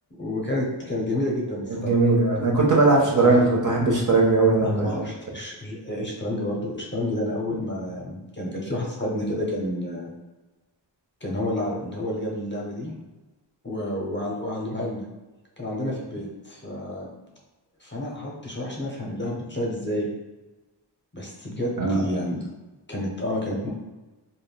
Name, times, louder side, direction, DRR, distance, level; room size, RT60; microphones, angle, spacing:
voice 1, 0.1-1.9 3.1-3.4 4.6-10.1 11.2-12.9 13.6-15.0 15.6-17.1 17.8-20.1 21.1-22.5 22.9-23.7, left 1 dB, 25° left, -3 dB, 0.7 m, -30 dB
voice 2, 1.7-5.0 21.8-22.0, right 3 dB, 45° right, -2 dB, 0.7 m, -19 dB
3.4 x 2.1 x 2.2 m, 1.1 s
wide cardioid pair, 50°, 43 cm